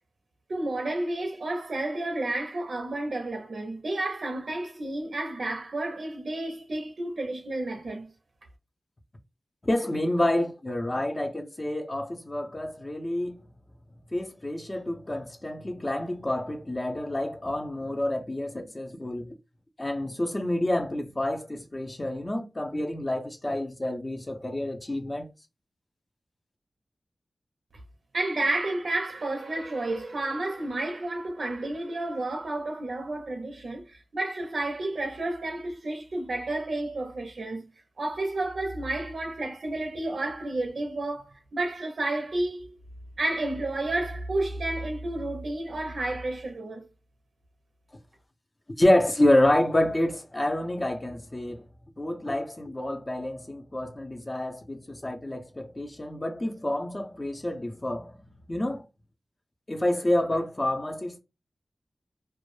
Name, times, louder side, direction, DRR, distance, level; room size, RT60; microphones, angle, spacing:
voice 1, 0.5-8.1 28.1-37.7 38.0-42.8 43.2-46.9, right 2 dB, 75° right, 0.5 m, -31 dB
voice 2, 9.6-13.4 14.1-19.3 19.8-25.3 48.8-51.7 52.0-58.2 58.5-58.8 59.7-61.2, left 1 dB, 25° left, 0.5 m, -28 dB
2.2 x 2.0 x 3.0 m
wide cardioid pair, 95°, 0 cm